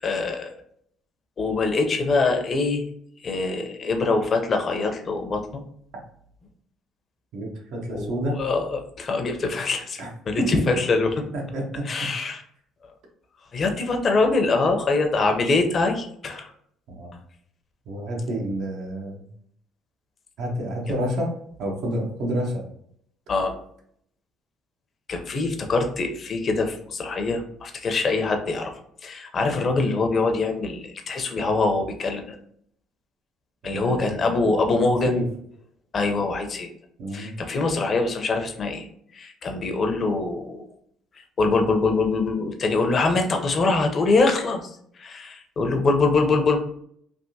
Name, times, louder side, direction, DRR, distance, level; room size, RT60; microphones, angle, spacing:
voice 1, 0.0-0.6 1.4-2.8 3.2-5.6 7.9-11.2 11.9-12.4 13.5-16.5 23.3-23.5 25.1-28.7 29.0-32.4 33.6-35.1 35.9-36.7 37.1-38.9 39.1-40.6 41.4-46.6, left 3 dB, 40° left, 4 dB, 0.6 m, -24 dB
voice 2, 7.3-8.4 10.0-10.1 10.4-10.6 11.3-12.1 16.9-17.1 17.9-19.3 20.4-22.6 29.4-29.7 33.6-35.3 37.0-37.4, equal, 70° right, 0 dB, 1.0 m, -29 dB
3.4 x 2.5 x 2.7 m, 0.68 s
cardioid pair, 95°, 0 cm